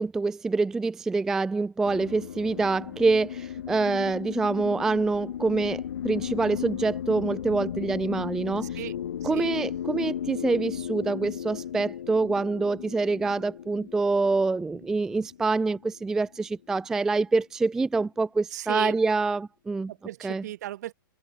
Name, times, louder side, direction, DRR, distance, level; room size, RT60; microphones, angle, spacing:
voice 1, 0.0-8.8 9.2-19.9 20.2-20.4, right 3 dB, 5° right, 0.3 m, -26 dB
sound 1, 1.8-16.4, left 9 dB, 75° left, 1.2 m, -35 dB
voice 2, 8.6-8.9 9.2-9.4 18.5-19.0 19.9-20.9, right 14 dB, 50° right, 2.6 m, -35 dB
hypercardioid pair, 160°, 11 cm